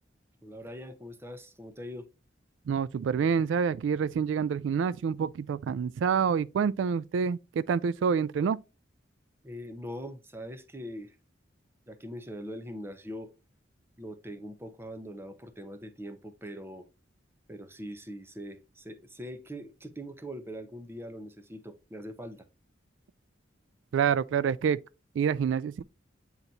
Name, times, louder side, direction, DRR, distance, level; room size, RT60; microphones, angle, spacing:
voice 1, 0.4-2.1 9.4-11.2 11.9-13.3 14.0-16.9 17.5-22.5, equal, 15° right, 0.8 m, -42 dB
voice 2, 2.7-8.6 23.9-24.8 25.2-25.8, right 6 dB, 80° right, 0.3 m, -27 dB
8.9 x 4.0 x 2.8 m
head